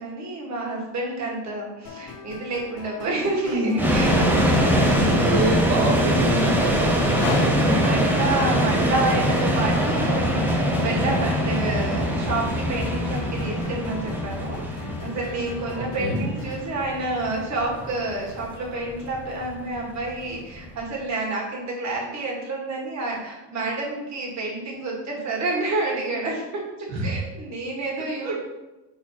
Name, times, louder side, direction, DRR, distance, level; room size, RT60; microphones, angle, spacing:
voice 1, 0.0-4.4 4.6-5.7 7.3-26.6 27.0-28.3, right 2 dB, 35° right, -2 dB, 1.8 m, -29 dB
sound 1, 1.8-16.6, left 5 dB, 40° left, 1.2 m, -41 dB
sound 2, 3.8-20.8, equal, 5° right, 0.3 m, -23 dB
voice 2, 4.9-7.0 16.0-16.2 26.9-27.0 28.2-28.3, right 2 dB, 60° right, -2 dB, 1.8 m, -26 dB
sound 3, 6.9-9.0, left 5 dB, 80° left, 1.1 m, -32 dB
4.5 x 4.1 x 5.7 m, 1.0 s
cardioid pair, 145°, 49 cm